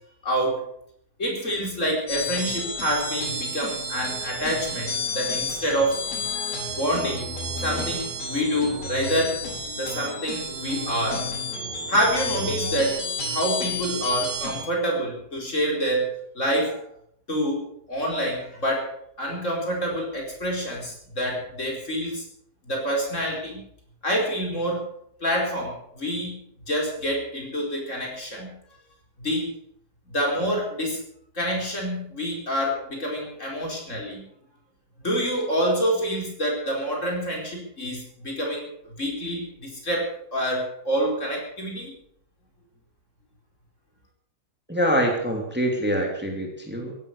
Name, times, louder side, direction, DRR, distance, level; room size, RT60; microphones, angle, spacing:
voice 1, 0.2-0.6 1.2-6.0 6.7-7.3 7.6-9.4 9.8-11.3 11.9-16.8 17.3-22.2 22.6-23.6 24.0-24.9 25.2-26.4 26.7-28.5 29.2-29.5 30.1-31.0 31.3-34.2 35.0-38.7 39.0-41.9, equal, 45° left, 0 dB, 5.1 m, -27 dB
sound 1, 2.1-14.6, left 1 dB, 90° left, 5.4 m, -31 dB
voice 2, 44.7-46.9, equal, 5° right, 2 dB, 2.8 m, -25 dB
16.0 x 12.5 x 6.7 m, 0.68 s
omnidirectional pair, 1.7 m